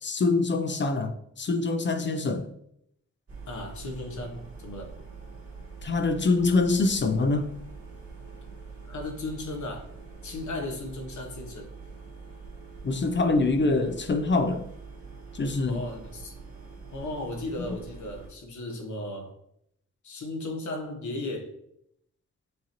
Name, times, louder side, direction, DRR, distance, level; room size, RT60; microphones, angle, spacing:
voice 1, 0.0-2.5 5.8-7.6 12.8-14.7 15.3-15.9, left 3 dB, 40° left, 0.5 m, -25 dB
sound 1, 3.3-18.3, right 4 dB, 50° right, 1.7 m, -44 dB
voice 2, 3.5-4.9 8.8-9.9 10.2-11.7 15.6-16.3 16.9-19.3 20.0-21.5, left 2 dB, 75° left, 1.0 m, -36 dB
6.6 x 2.7 x 2.9 m
cardioid pair, 90°, 29 cm